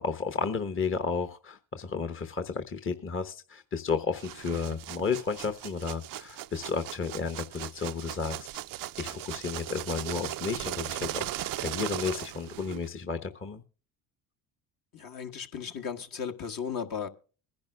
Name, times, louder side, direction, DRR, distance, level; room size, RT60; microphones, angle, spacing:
voice 1, 0.0-8.5 9.0-13.6, left 5 dB, 30° left, 1.1 m, -32 dB
sound 1, 4.1-12.9, right 14 dB, 50° right, 0.5 m, -38 dB
voice 2, 14.9-17.1, left 7 dB, 50° left, 1.4 m, -35 dB
21.5 x 10.5 x 2.3 m
supercardioid pair, 70°, 44 cm